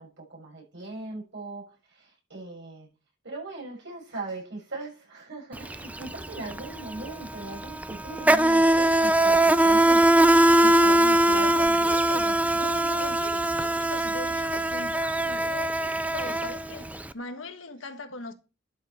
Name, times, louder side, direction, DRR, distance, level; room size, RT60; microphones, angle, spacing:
voice 1, 0.0-2.9 3.2-11.9 12.5-13.2, right 2 dB, 65° right, 6.4 m, -39 dB
Insect, 5.6-5.8 6.0-17.0, right 1 dB, 5° right, 0.4 m, -21 dB
voice 2, 11.3-12.5 13.0-18.3, left 3 dB, 80° left, 1.5 m, -40 dB
11.5 x 7.1 x 4.4 m
head